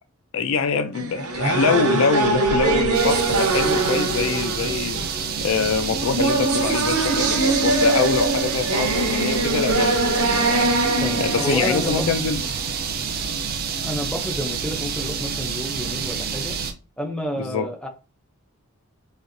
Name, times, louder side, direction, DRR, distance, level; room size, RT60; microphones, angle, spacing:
voice 1, 0.3-10.7 11.2-12.4 17.4-17.7, left 5 dB, 65° left, 0.4 m, -24 dB
sound 1, 0.9-12.8, right 2 dB, 85° right, 0.8 m, -23 dB
sound 2, 2.9-16.7, right 6 dB, 40° right, 0.4 m, -28 dB
voice 2, 11.0-12.1 13.8-16.6 17.0-17.9, equal, 5° left, 0.5 m, -30 dB
4.2 x 2.9 x 2.6 m
head